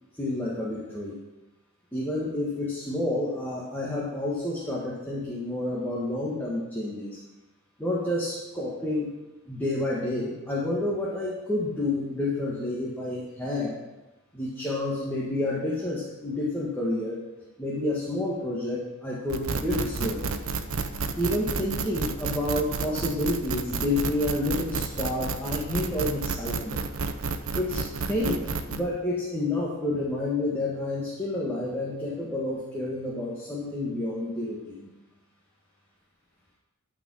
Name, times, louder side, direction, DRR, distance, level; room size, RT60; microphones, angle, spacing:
voice 1, 0.2-1.2 1.9-7.2 7.8-9.1 9.5-13.7 14.3-17.2 17.6-20.4 21.2-26.8 27.5-28.4 28.7-34.9, left 2 dB, 10° left, -5 dB, 1.6 m, -29 dB
sound 1, 19.3-28.8, right 4 dB, 85° right, 0.8 m, -31 dB
12.5 x 5.0 x 6.3 m, 1.1 s
head